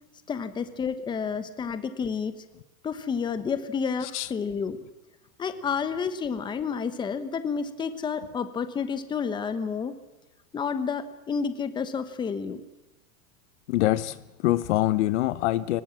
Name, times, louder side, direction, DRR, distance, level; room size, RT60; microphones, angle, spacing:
voice 1, 0.3-2.3 2.8-4.8 5.4-9.9 10.5-12.6, left 6 dB, 10° left, 11 dB, 1.1 m, -30 dB
voice 2, 13.7-15.8, left 15 dB, 50° left, 16 dB, 1.0 m, -25 dB
22.5 x 20.0 x 7.4 m, 1.0 s
supercardioid pair, 165°, 44 cm